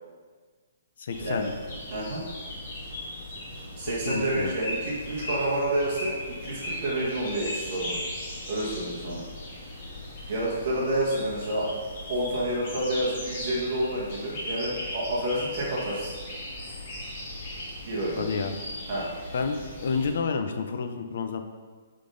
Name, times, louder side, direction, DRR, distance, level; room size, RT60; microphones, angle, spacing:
voice 1, 1.0-1.4 3.8-4.5 18.2-18.5 19.3-21.4, left 5 dB, 50° left, 7 dB, 0.6 m, -30 dB
sound 1, 1.1-20.1, left 1 dB, 30° left, 2.0 m, -38 dB
voice 2, 1.9-2.2 3.8-7.9 8.5-9.2 10.3-11.7 12.1-16.1 17.9-18.2 18.9-19.1, right 1 dB, 30° right, -5 dB, 1.6 m, -29 dB
8.5 x 3.9 x 3.9 m, 1.5 s
hypercardioid pair, 175°, 0 cm